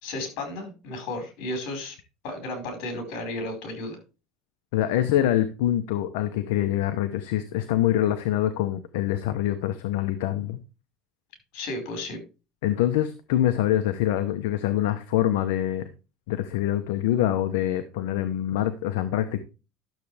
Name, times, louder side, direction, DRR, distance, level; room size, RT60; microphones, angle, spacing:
voice 1, 0.0-1.9 2.2-4.0 11.5-12.2, left 2 dB, 70° left, 6 dB, 4.9 m, -33 dB
voice 2, 4.7-10.6 12.6-15.9 16.3-19.4, left 12 dB, 85° left, 10 dB, 0.9 m, -25 dB
12.0 x 7.3 x 3.4 m, 0.30 s
supercardioid pair, 110°, 0 cm